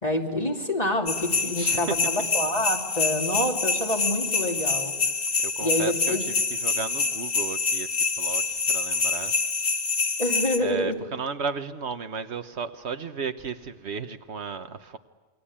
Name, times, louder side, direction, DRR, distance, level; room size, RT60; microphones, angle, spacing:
voice 1, 0.0-4.9 5.6-6.3 10.2-11.0, left 1 dB, 35° left, 1 dB, 3.0 m, -27 dB
sound 1, 1.1-10.6, left 4 dB, 85° left, 1.9 m, -26 dB
voice 2, 1.3-2.0 5.4-9.3 10.6-15.0, right 5 dB, 70° right, 9 dB, 1.3 m, -34 dB
28.0 x 22.0 x 8.8 m, 1.2 s
omnidirectional pair, 1.2 m